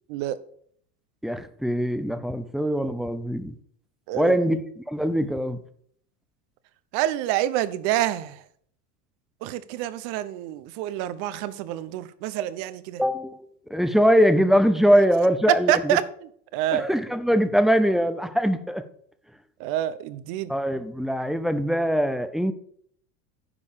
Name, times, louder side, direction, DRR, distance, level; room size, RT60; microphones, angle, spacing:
voice 1, 1.2-3.5 4.1-5.6 13.0-16.0 16.7-18.8 20.5-22.5, equal, ahead, 11 dB, 0.6 m, -22 dB
voice 2, 4.1-4.4 6.9-8.4 9.4-13.0 15.7-16.9 19.6-20.5, right 13 dB, 55° right, 15 dB, 1.0 m, -27 dB
10.0 x 5.3 x 6.7 m, 0.63 s
supercardioid pair, 115°, 48 cm